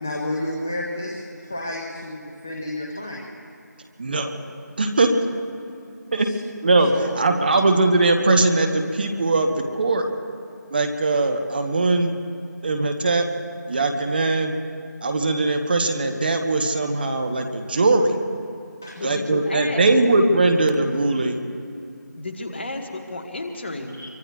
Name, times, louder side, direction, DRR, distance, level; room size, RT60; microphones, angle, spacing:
voice 1, 0.0-3.2 6.9-7.6 18.8-19.0 24.0-24.1, left 1 dB, 10° left, -1 dB, 0.3 m, -31 dB
voice 2, 4.0-4.4 4.8-5.1 6.1-6.3 6.6-10.1 10.7-12.1 12.6-13.2 13.7-14.5 15.0-18.1 19.0-21.4, right 2 dB, 30° right, 5 dB, 0.9 m, -20 dB
voice 3, 18.9-19.9 22.2-24.0, left 2 dB, 35° left, 3 dB, 1.3 m, -32 dB
24.0 x 24.0 x 2.4 m, 2.5 s
figure-of-eight pair, 165°, 10 cm